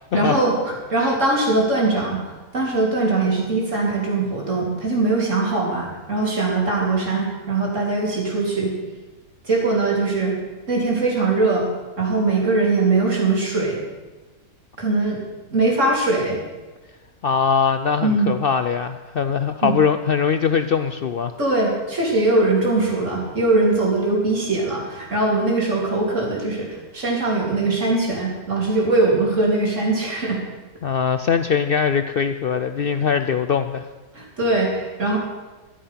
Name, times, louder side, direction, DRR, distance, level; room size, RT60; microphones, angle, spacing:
voice 1, 0.1-8.7 9.4-10.4 10.7-11.7 12.0-13.8 14.8-15.2 15.5-16.4 18.0-18.3 19.6-19.7 21.4-30.4 34.1-35.2, right 2 dB, 50° right, -3 dB, 3.9 m, -21 dB
voice 2, 17.2-21.3 30.8-33.9, left 6 dB, 75° left, 10 dB, 0.5 m, -21 dB
13.0 x 12.5 x 5.8 m, 1.2 s
omnidirectional pair, 1.6 m